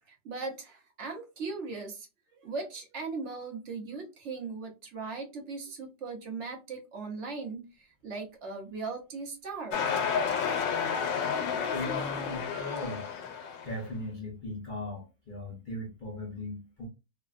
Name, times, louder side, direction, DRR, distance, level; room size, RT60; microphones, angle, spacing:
voice 1, 0.1-2.1 2.4-9.8, right 4 dB, 55° right, 0.8 m, -38 dB
sound 1, 9.7-13.8, left 6 dB, 90° left, 1.4 m, -31 dB
voice 2, 11.7-13.1 13.6-16.8, left 1 dB, 60° left, 0.5 m, -38 dB
3.2 x 2.2 x 2.4 m
omnidirectional pair, 1.9 m